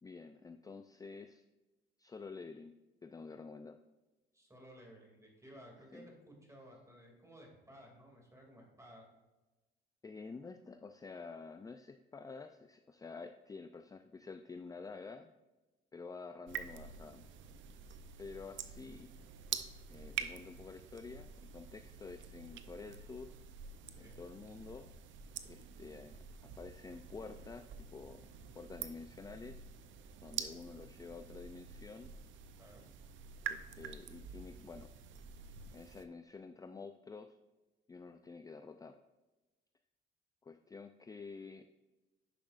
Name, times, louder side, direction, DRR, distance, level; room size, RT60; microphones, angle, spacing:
voice 1, 0.0-1.4 2.0-2.7 3.0-3.8 5.9-6.1 10.0-15.3 15.9-17.3 18.2-19.1 19.9-23.4 24.0-24.9 25.4-28.3 28.6-29.6 30.2-32.1 33.5-34.9 35.7-37.4 37.9-39.0 40.4-41.7, left 4 dB, 20° left, 8 dB, 0.4 m, -49 dB
voice 2, 4.3-9.0 23.9-24.2 32.6-32.9, equal, 15° right, -1 dB, 2.5 m, -56 dB
sound 1, 16.5-36.0, right 8 dB, 75° right, 0.6 m, -47 dB
10.0 x 5.8 x 2.5 m, 1.1 s
cardioid pair, 90°, 20 cm